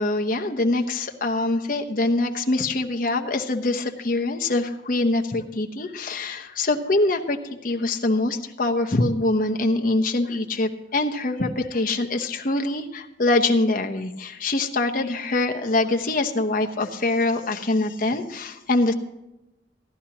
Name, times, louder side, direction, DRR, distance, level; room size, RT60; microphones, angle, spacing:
voice 1, 0.0-18.9, left 2 dB, 50° left, 4 dB, 1.0 m, -24 dB
16.5 x 11.5 x 3.0 m, 0.95 s
head